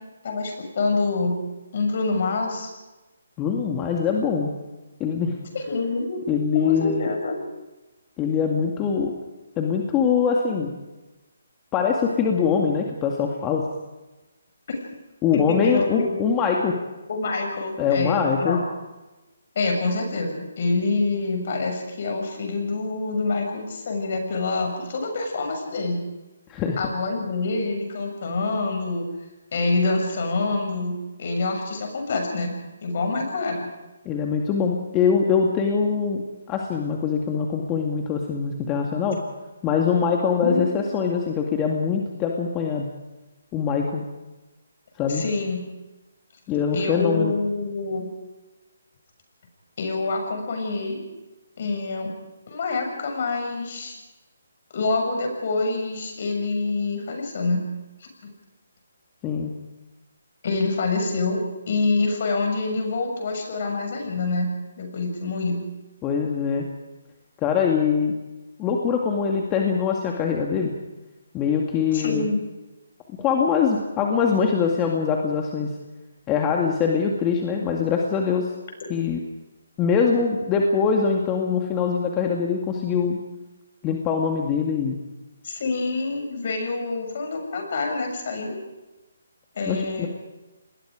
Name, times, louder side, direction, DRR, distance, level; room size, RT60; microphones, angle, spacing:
voice 1, 0.2-1.4 1.7-2.7 5.5-6.2 6.5-7.4 14.7-14.8 15.3-16.2 17.1-18.6 19.5-26.0 26.8-29.1 29.5-33.7 40.4-40.7 45.1-45.6 46.7-48.1 49.8-51.0 51.6-52.1 52.5-54.0 54.7-57.6 58.0-58.1 60.4-61.4 61.7-65.6 71.9-72.4 85.4-88.6 89.5-90.1, left 3 dB, 50° left, 3 dB, 6.7 m, -26 dB
voice 2, 3.4-4.5 5.0-5.3 6.3-7.1 8.2-9.1 9.6-10.8 11.7-13.6 15.2-16.7 17.8-18.6 26.5-26.8 34.1-36.2 36.5-39.2 39.6-42.9 43.5-44.0 45.0-45.2 46.5-47.3 59.2-59.5 66.0-66.7 67.4-68.1 68.6-70.7 71.3-72.3 73.2-75.7 76.3-78.5 78.9-79.2 79.8-83.2 83.8-85.0 89.7-90.1, left 6 dB, 20° left, 1 dB, 2.1 m, -23 dB
28.0 x 20.5 x 5.0 m, 1.1 s
figure-of-eight pair, 150°, 0 cm